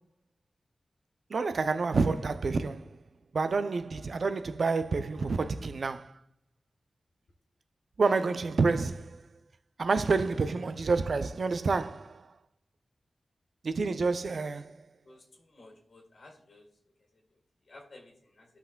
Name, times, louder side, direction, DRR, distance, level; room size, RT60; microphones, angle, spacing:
voice 1, 1.3-3.0 3.3-6.1 8.0-9.2 9.8-12.2 13.6-14.7, right 4 dB, 70° right, 0.4 m, -28 dB
voice 2, 15.5-16.7 17.7-18.5, left 2 dB, 75° left, 1.9 m, -53 dB
16.0 x 5.7 x 2.2 m
wide cardioid pair, 90°, 0 cm